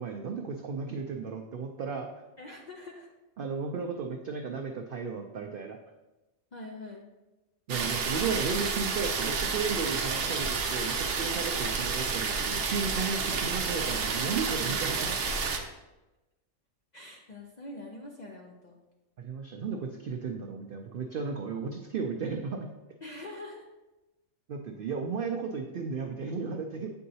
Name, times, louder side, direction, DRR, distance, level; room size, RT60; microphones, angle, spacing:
voice 1, 0.0-2.1 3.4-5.8 7.7-15.1 19.2-22.7 24.5-26.9, right 5 dB, 90° right, 2 dB, 0.4 m, -34 dB
voice 2, 2.4-3.1 6.5-7.1 11.4-11.8 13.0-13.4 14.5-15.4 16.9-18.8 23.0-23.7, left 2 dB, 60° left, -1 dB, 0.4 m, -45 dB
sound 1, 7.7-15.6, right 5 dB, 55° right, 0.7 m, -30 dB
7.6 x 4.6 x 2.7 m, 1.0 s
omnidirectional pair, 1.5 m